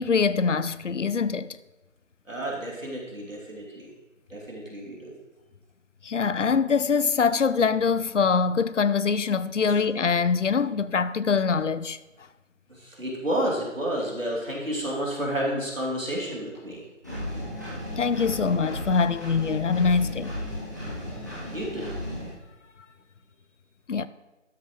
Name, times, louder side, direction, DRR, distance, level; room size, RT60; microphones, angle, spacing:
voice 1, 0.0-1.6 6.0-12.0 18.0-20.4 23.9-24.1, left 5 dB, 70° left, 0.5 m, -24 dB
voice 2, 2.3-3.9 4.3-5.1 12.7-16.8 21.5-21.9, right 1 dB, 90° right, 3.0 m, -30 dB
Engine, 17.0-22.3, left 1 dB, 15° right, 1.4 m, -35 dB
12.5 x 7.3 x 3.1 m
figure-of-eight pair, 170°, 38 cm